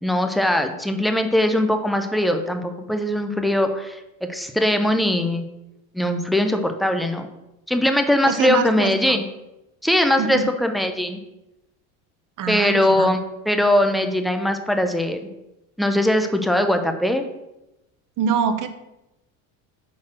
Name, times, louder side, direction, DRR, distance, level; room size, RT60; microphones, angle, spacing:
voice 1, 0.0-5.5 5.9-7.3 7.7-9.2 9.8-11.2 12.5-13.2 13.5-15.2 15.8-17.3, left 1 dB, ahead, 6 dB, 0.8 m, -21 dB
voice 2, 8.3-9.2 10.2-10.5 12.4-13.1 18.2-18.7, right 7 dB, 45° right, 9 dB, 0.9 m, -24 dB
5.9 x 4.2 x 6.2 m, 0.93 s
supercardioid pair, 85°, 42 cm